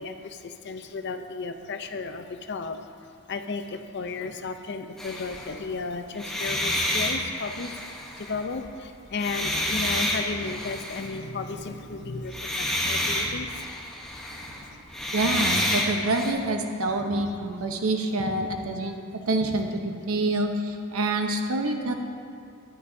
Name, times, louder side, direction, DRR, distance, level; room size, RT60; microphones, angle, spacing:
voice 1, 0.0-2.8 3.3-13.7 14.0-14.9, left 4 dB, 55° left, 7 dB, 0.6 m, -34 dB
sound 1, 5.0-5.6 6.1-8.7 9.1-11.2 12.2-16.3, left 1 dB, ahead, 1.0 m, -29 dB
voice 2, 15.1-19.0 19.2-21.9, right 2 dB, 80° right, 4 dB, 0.9 m, -27 dB
14.0 x 11.0 x 2.7 m, 2.3 s
head